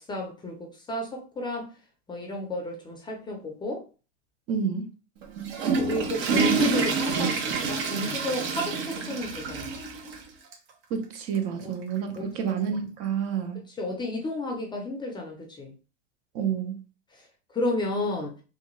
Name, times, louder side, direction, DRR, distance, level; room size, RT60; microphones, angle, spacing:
voice 1, 0.0-1.7 2.1-3.8 5.8-9.8 11.6-11.7 12.2-12.3 13.7-15.7 17.1-17.3 17.5-18.3, left 1 dB, 15° left, 0.5 m, -32 dB
voice 2, 4.5-4.9 10.9-13.6 16.3-16.8, right 7 dB, 45° right, 0.7 m, -29 dB
Water / Toilet flush, 5.2-10.2 10.5-10.6 11.4-11.5 12.7-12.8, right 4 dB, 60° right, 1.1 m, -27 dB
3.3 x 2.3 x 3.1 m
supercardioid pair, 125°, 35 cm